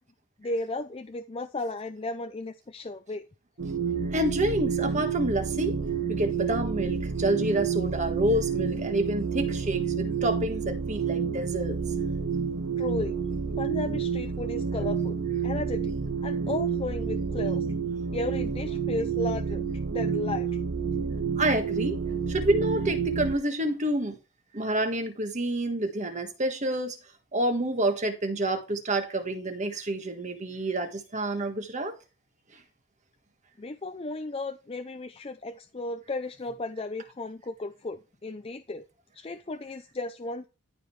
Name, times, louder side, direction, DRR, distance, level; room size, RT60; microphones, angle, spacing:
voice 1, 0.4-3.2 12.8-13.2 13.6-15.2 15.4-16.0 16.2-17.7 18.1-20.6 33.6-38.8 39.1-40.5, left 2 dB, 25° left, 0.5 m, -34 dB
sound 1, 3.6-23.4, right 6 dB, 55° right, 0.7 m, -29 dB
voice 2, 4.1-5.8 6.1-11.8 21.4-22.0 22.3-24.2 24.5-27.0 27.3-31.9, right 1 dB, 35° right, 1.5 m, -28 dB
13.5 x 5.2 x 3.2 m
head